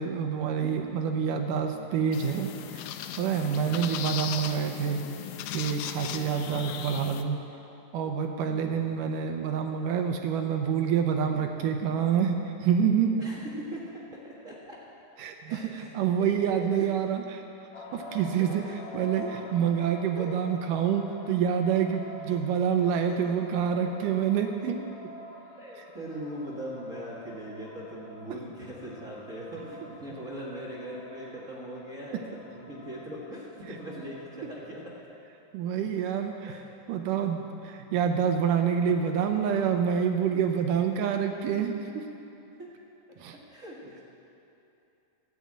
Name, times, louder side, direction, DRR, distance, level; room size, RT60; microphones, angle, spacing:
voice 1, 0.0-2.9 3.2-5.0 5.5-7.4 7.9-13.1 15.2-17.2 17.8-18.6 18.9-19.2 19.5-24.8 35.5-36.6 36.9-42.0 43.2-43.4, right 7 dB, 75° right, 4 dB, 2.1 m, -27 dB
sound 1, 2.1-7.2, left 10 dB, 80° left, 2.3 m, -37 dB
voice 2, 6.2-6.7 13.2-14.8 15.5-15.9 16.2-16.3 16.5-16.9 18.4-19.3 20.2-20.4 22.3-22.4 22.8-23.2 25.6-32.2 32.5-34.8 36.4-36.6 42.6-42.7 43.5-44.0, equal, 40° right, -5 dB, 1.2 m, -41 dB
sound 2, 17.7-35.0, equal, 60° left, 1.6 m, -47 dB
13.0 x 8.5 x 8.7 m, 2.8 s
omnidirectional pair, 4.1 m